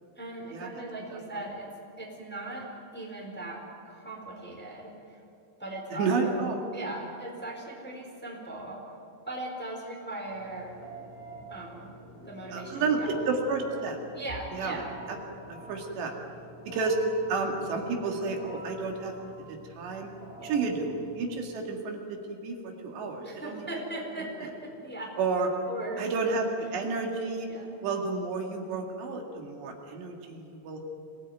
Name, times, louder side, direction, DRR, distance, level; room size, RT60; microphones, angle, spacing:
voice 1, 0.2-1.7 2.0-2.7 2.9-3.6 3.8-5.2 5.6-6.4 6.7-8.8 9.3-10.8 11.5-11.9 12.2-13.1 14.1-14.9 20.4-20.5 23.2-25.1 25.7-26.1 27.5-27.7, right 2 dB, ahead, -1 dB, 3.8 m, -39 dB
voice 2, 5.9-6.6 12.5-14.0 14.5-14.8 15.1-15.2 15.5-16.1 16.7-17.0 17.3-19.1 19.5-20.1 20.4-23.7 25.2-25.5 26.0-27.5 27.8-30.8, right 4 dB, 70° right, 2 dB, 4.3 m, -31 dB
Telephone, 10.3-21.4, right 1 dB, 50° left, 8.7 m, -46 dB
26.0 x 18.5 x 9.3 m, 2.8 s
omnidirectional pair, 5.3 m